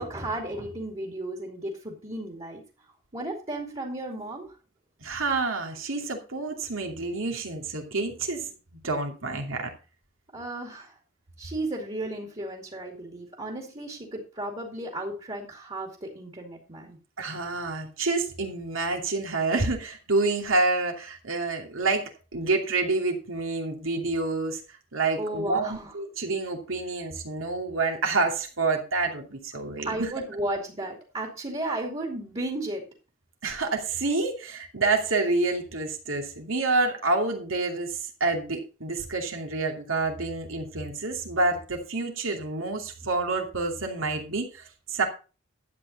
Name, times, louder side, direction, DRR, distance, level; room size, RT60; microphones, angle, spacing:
voice 1, 0.0-2.6 3.1-4.6 10.3-10.9 11.4-17.0 25.2-25.9 29.8-32.8, right 1 dB, 30° right, 1 dB, 2.5 m, -34 dB
voice 2, 5.0-9.7 17.2-24.6 24.9-30.1 33.4-45.1, right 3 dB, 75° right, 3 dB, 2.6 m, -28 dB
12.0 x 8.7 x 4.0 m, 0.34 s
head